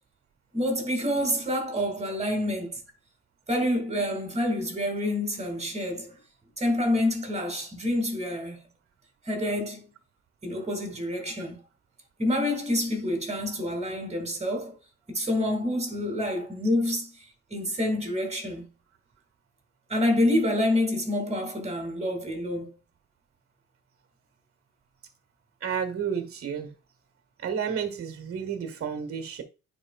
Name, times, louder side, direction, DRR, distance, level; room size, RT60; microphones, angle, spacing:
voice 1, 0.5-2.8 3.5-6.2 6.6-8.6 9.3-9.9 10.4-11.6 12.2-14.8 15.1-17.1 17.5-18.7 19.9-22.7, left 1 dB, 20° right, 2.3 m, -27 dB
voice 2, 25.6-26.7 27.4-29.4, right 7 dB, 50° right, 1.4 m, -31 dB
9.9 x 4.4 x 2.3 m
cardioid pair, 90°, 30 cm